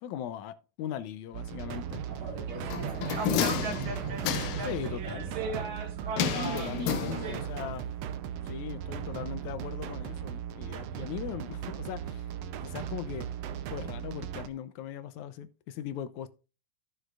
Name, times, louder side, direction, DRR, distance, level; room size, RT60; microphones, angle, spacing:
voice 1, 0.0-2.0 3.3-3.6 4.7-5.3 6.3-7.9 8.4-12.2 12.6-13.3 13.7-16.3, left 10 dB, 70° left, 2.1 m, -39 dB
sound 1, 1.3-14.5, right 9 dB, 75° right, 1.6 m, -38 dB
voice 2, 2.1-5.6, right 2 dB, 40° right, 3.8 m, -45 dB
sound 2, 2.5-7.4, right 4 dB, 55° right, 1.5 m, -36 dB
sound 3, 2.7-4.8 6.2-7.6 7.9-8.0, left 8 dB, 90° left, 2.6 m, -31 dB
15.0 x 6.4 x 2.5 m
omnidirectional pair, 3.7 m